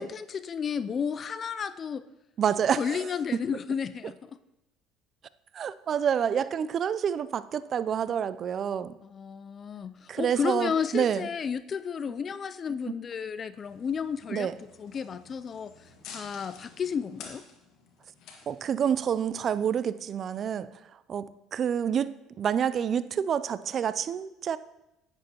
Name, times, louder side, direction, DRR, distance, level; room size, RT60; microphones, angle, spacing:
voice 1, 0.0-2.0 2.8-4.2 9.0-14.5 14.8-15.7 16.1-17.4, left 6 dB, 40° left, 14 dB, 0.4 m, -32 dB
voice 2, 2.4-3.1 3.3-3.4 5.5-8.9 10.1-11.3 14.3-14.5 18.5-24.6, right 8 dB, 45° right, 16 dB, 0.4 m, -28 dB
sound 1, 13.6-19.6, left 5 dB, 65° left, 1.7 m, -51 dB
10.5 x 9.0 x 2.9 m, 0.91 s
hypercardioid pair, 75°, 0 cm